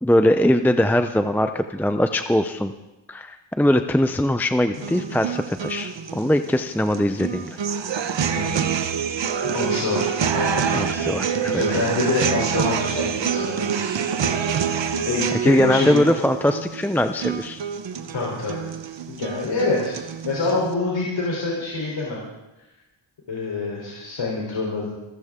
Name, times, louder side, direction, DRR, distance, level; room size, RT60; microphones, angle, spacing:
voice 1, 0.0-2.7 3.1-7.6 10.7-11.9 15.4-17.6, left 1 dB, 5° left, 8 dB, 0.6 m, -21 dB
sound 1, 4.7-20.7, right 7 dB, 70° right, 1.1 m, -26 dB
voice 2, 8.2-8.7 9.4-10.6 11.4-14.5 15.1-16.1 18.1-18.7 19.1-22.2 23.3-24.9, left 3 dB, 80° left, -3 dB, 3.8 m, -26 dB
26.5 x 14.0 x 3.7 m, 1.0 s
wide cardioid pair, 105°, 45 cm